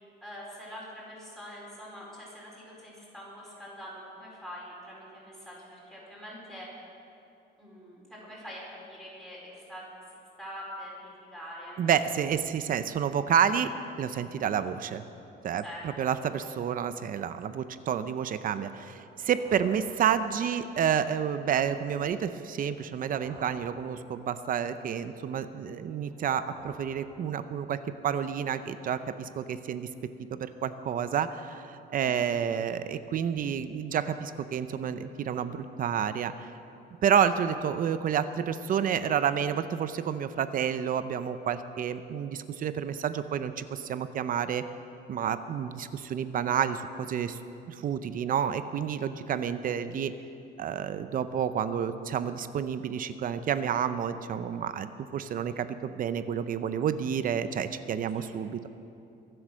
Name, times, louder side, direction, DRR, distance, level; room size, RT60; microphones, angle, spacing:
voice 1, 0.2-6.7 7.6-9.9 10.4-11.8 15.6-15.9 32.0-32.2 58.1-58.3, equal, ahead, -6 dB, 4.6 m, -44 dB
voice 2, 11.8-13.7 14.0-15.0 15.4-29.9 30.3-36.3 37.0-44.7 45.1-47.4 47.7-50.1 50.6-58.6, right 8 dB, 45° right, 12 dB, 0.6 m, -29 dB
sound 1, 18.8-20.7 22.6-24.4 25.9-27.8, right 2 dB, 30° right, 1.8 m, -52 dB
23.5 x 7.9 x 6.3 m, 2.7 s
cardioid pair, 160°, 19 cm